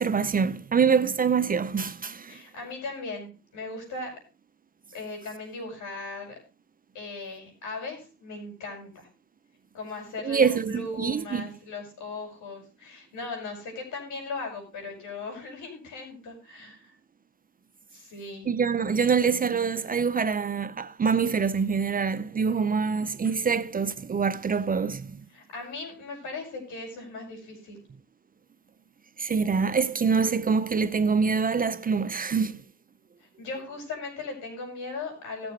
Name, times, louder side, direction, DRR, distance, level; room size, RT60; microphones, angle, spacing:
voice 1, 0.0-2.4 10.2-11.4 18.5-25.3 29.2-32.6, right 5 dB, 30° right, 0.6 m, -25 dB
voice 2, 2.3-4.2 4.9-6.3 6.9-9.1 9.7-16.9 17.9-18.6 25.3-27.8 33.2-35.5, left 3 dB, 75° left, 5.7 m, -38 dB
17.5 x 7.0 x 3.2 m
cardioid pair, 90°, 30 cm